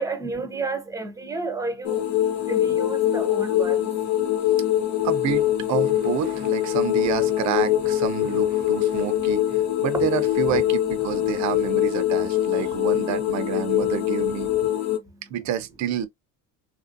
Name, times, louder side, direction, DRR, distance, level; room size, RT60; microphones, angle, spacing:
voice 1, 0.0-5.1 14.7-15.2, right 3 dB, 10° right, 0.7 m, -33 dB
sound 1, 1.8-15.0, left 12 dB, 55° left, 1.0 m, -23 dB
voice 2, 5.0-9.4 9.8-14.5 15.3-16.1, right 10 dB, 55° right, 0.6 m, -28 dB
3.0 x 2.5 x 2.5 m
cardioid pair, 125°, 34 cm